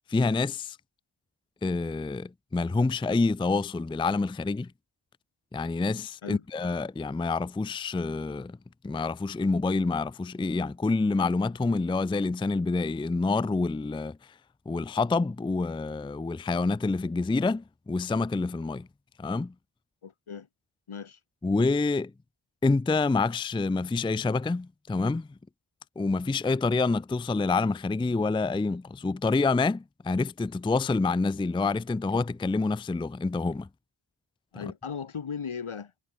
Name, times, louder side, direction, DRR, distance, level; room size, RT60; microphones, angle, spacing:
voice 1, 0.1-0.8 1.6-4.7 5.5-8.6 8.8-14.2 14.7-18.9 19.2-19.5 21.4-22.1 22.6-25.3 26.0-33.7 34.6-34.7, left 3 dB, 10° left, 0.4 m, -27 dB
voice 2, 20.0-20.5 20.9-21.2 34.5-35.9, left 6 dB, 80° left, 5.7 m, -37 dB
cardioid pair, 65°, 49 cm